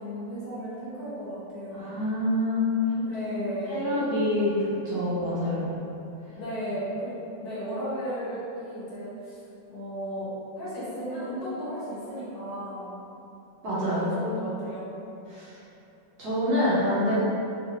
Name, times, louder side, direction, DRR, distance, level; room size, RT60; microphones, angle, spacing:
voice 1, 0.0-1.9 3.0-3.8 6.4-9.4 9.7-10.3 10.6-13.0 13.9-14.9, equal, 60° left, -10 dB, 1.3 m, -34 dB
voice 2, 1.8-2.6 3.7-4.5 4.8-5.7 13.6-14.0 15.3-15.5 16.2-17.1, equal, 60° right, -10 dB, 1.2 m, -26 dB
3.9 x 2.4 x 2.8 m, 2.8 s
omnidirectional pair, 2.1 m